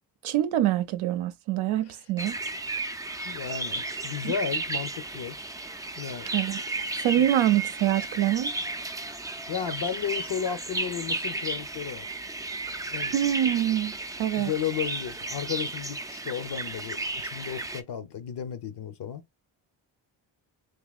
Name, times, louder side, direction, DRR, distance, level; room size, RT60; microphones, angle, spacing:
voice 1, 0.2-2.4 4.2-4.3 6.3-6.6 7.0-8.5 13.1-13.9 14.2-14.5, right 12 dB, 75° right, 0.6 m, -25 dB
sound 1, 2.2-17.8, right 2 dB, 10° right, 0.3 m, -34 dB
voice 2, 3.2-5.4 6.0-6.3 7.2-7.3 9.5-12.1 12.9-13.1 14.4-19.2, left 8 dB, 55° left, 0.8 m, -33 dB
3.8 x 2.9 x 2.4 m
supercardioid pair, 55°, 49 cm